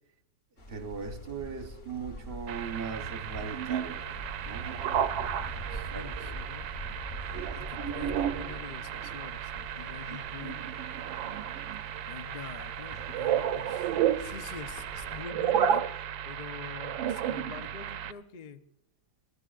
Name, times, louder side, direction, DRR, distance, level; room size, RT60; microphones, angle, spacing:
sound 1, 0.6-15.2, equal, 35° left, 0.9 m, -45 dB
voice 1, 0.7-4.0 4.4-4.7 5.2-5.4 5.9-6.1, right 5 dB, 45° right, 0.8 m, -39 dB
sound 2, 2.5-18.1, right 9 dB, 90° right, 1.4 m, -33 dB
voice 2, 5.7-6.7 7.2-10.8 12.0-18.6, left 6 dB, 80° left, 0.4 m, -46 dB
29.0 x 13.5 x 2.4 m
omnidirectional pair, 2.0 m